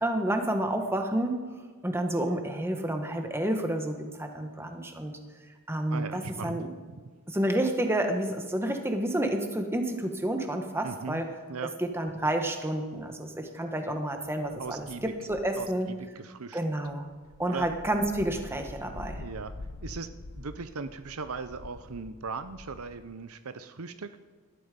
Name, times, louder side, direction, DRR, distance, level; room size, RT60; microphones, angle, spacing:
voice 1, 0.0-1.4 1.8-5.1 5.7-6.7 7.3-11.3 11.8-15.9 16.5-17.1 17.4-19.2, right 1 dB, 10° right, 5 dB, 1.5 m, -30 dB
voice 2, 5.9-6.6 10.8-11.2 11.5-11.7 14.6-15.1 15.6-16.6 17.5-17.7 19.1-19.5 19.8-20.1 20.4-24.1, right 4 dB, 70° right, 11 dB, 0.7 m, -38 dB
sound 1, 12.0-12.3 14.2-16.0 16.7-23.1, left 2 dB, 85° left, 0.9 m, -46 dB
19.0 x 12.5 x 5.3 m, 1.5 s
head